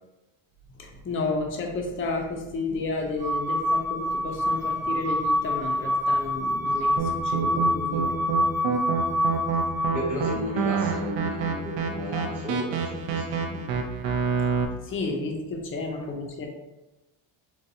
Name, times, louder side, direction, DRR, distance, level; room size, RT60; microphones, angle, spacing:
voice 1, 0.8-8.4 14.8-16.5, left 3 dB, 30° left, 1 dB, 0.4 m, -32 dB
sound 1, 3.2-10.2, equal, 35° right, 0.9 m, -26 dB
sound 2, 7.0-14.6, right 5 dB, 70° right, 0.6 m, -28 dB
voice 2, 9.9-13.6, equal, 5° right, -5 dB, 0.8 m, -33 dB
4.0 x 2.2 x 2.6 m, 1.0 s
cardioid pair, 150°, 48 cm